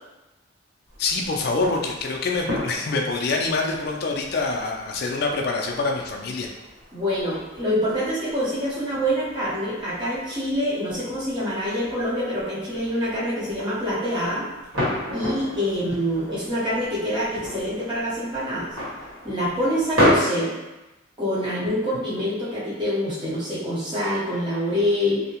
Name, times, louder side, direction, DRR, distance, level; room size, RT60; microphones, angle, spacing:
sound 1, 0.9-20.2, equal, 80° right, 1.3 m, -32 dB
voice 1, 1.0-6.5, left 3 dB, 50° left, 1 dB, 0.3 m, -25 dB
voice 2, 6.9-14.5 15.1-18.7 19.2-20.5 21.2-25.2, equal, 25° right, -9 dB, 0.8 m, -26 dB
2.7 x 2.0 x 2.8 m, 1.0 s
head